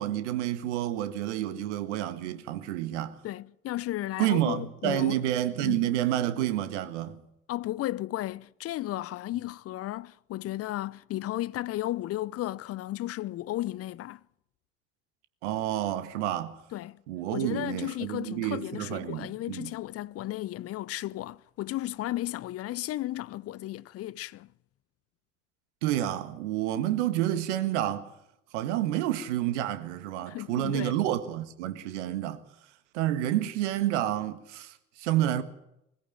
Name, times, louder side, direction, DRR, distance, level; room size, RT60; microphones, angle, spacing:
voice 1, 0.0-3.2 4.2-7.2 15.4-16.6 17.1-19.7 25.8-28.1 28.5-32.4 32.9-35.4, right 12 dB, 65° right, 1.7 m, -29 dB
voice 2, 3.2-5.2 5.6-5.9 7.5-14.2 16.7-17.0 17.3-24.5 30.3-31.0, left 15 dB, 40° left, 0.7 m, -34 dB
21.0 x 15.0 x 9.0 m
figure-of-eight pair, 60°, 38 cm